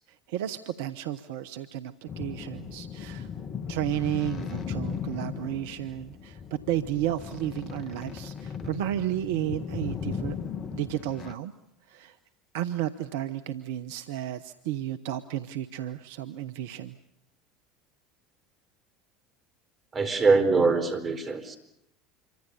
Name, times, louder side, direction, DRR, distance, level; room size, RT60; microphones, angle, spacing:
voice 1, 0.3-3.3 3.7-10.4 10.7-11.5 11.9-12.1 12.5-16.9, right 12 dB, 70° right, 11 dB, 0.9 m, -32 dB
sound 1, 2.1-11.3, left 6 dB, 40° left, 1.7 m, -37 dB
voice 2, 19.9-21.6, right 4 dB, 35° right, 8 dB, 4.5 m, -23 dB
27.0 x 24.5 x 7.0 m, 0.83 s
hypercardioid pair, 75°, 0 cm